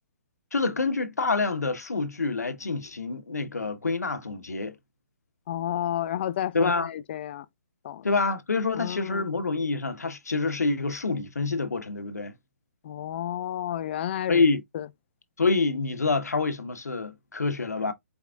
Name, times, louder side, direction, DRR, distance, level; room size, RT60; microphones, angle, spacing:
voice 1, 0.5-4.7 6.5-6.9 8.0-12.3 14.3-14.6 15.4-17.9, left 3 dB, 85° left, 0.9 m, -27 dB
voice 2, 5.5-7.5 7.8-8.1 8.8-9.3 12.8-14.4 14.7-14.9, left 11 dB, 45° left, 0.4 m, -31 dB
4.6 x 3.5 x 2.3 m
hypercardioid pair, 140°, 9 cm